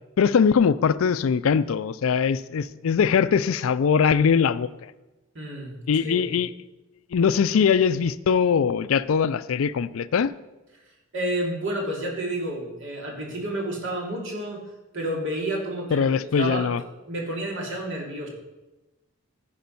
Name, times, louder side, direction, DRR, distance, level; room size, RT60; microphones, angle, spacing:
voice 1, 0.2-4.9 5.9-6.5 7.1-10.3 15.9-16.8, left 6 dB, 75° left, 16 dB, 0.4 m, -21 dB
voice 2, 5.3-6.3 11.1-14.6 14.9-16.1 16.4-16.7 17.1-18.3, right 1 dB, 60° right, -1 dB, 2.6 m, -30 dB
14.5 x 5.2 x 5.4 m, 1.1 s
head